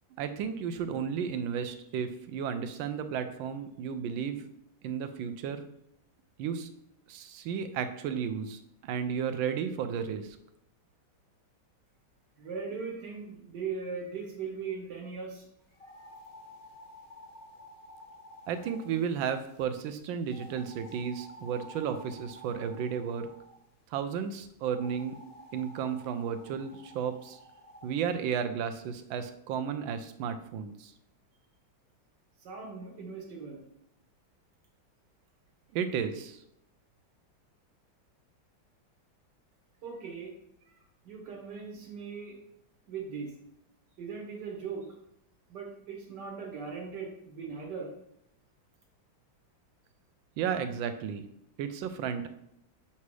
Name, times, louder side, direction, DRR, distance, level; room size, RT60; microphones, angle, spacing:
voice 1, 0.2-4.5 4.8-5.6 6.4-6.7 7.1-10.4 18.5-23.3 23.9-25.2 25.5-27.4 27.8-30.9 35.7-36.4 50.4-51.2 51.6-52.3, right 7 dB, 85° right, 9 dB, 1.4 m, -33 dB
voice 2, 12.4-15.5 32.4-33.6 39.8-40.3 41.1-42.4 42.9-43.3 44.0-44.9 45.5-47.9, right 5 dB, 65° right, 1 dB, 1.7 m, -39 dB
sound 1, 15.7-19.6 20.3-23.6 24.7-27.9, equal, 60° left, 0.6 m, -51 dB
7.1 x 2.8 x 4.7 m, 0.76 s
omnidirectional pair, 2.1 m